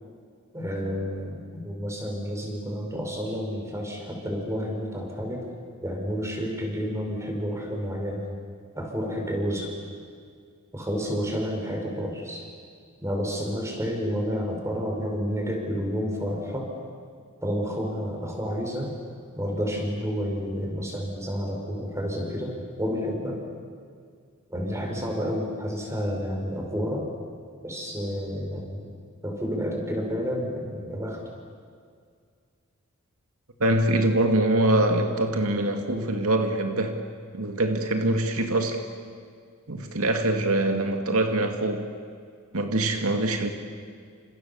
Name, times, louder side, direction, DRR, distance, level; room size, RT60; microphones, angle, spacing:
voice 1, 0.5-5.4 5.8-8.2 8.7-9.7 10.7-12.4 13.0-16.7 17.4-19.0 19.4-23.4 24.5-27.1 27.6-28.9 29.2-31.2, equal, 15° right, 1 dB, 5.7 m, -30 dB
voice 2, 33.6-37.0 37.3-38.8 39.7-41.9 42.5-43.5, right 1 dB, 90° right, 4 dB, 2.4 m, -24 dB
30.0 x 27.5 x 7.2 m, 2.1 s
head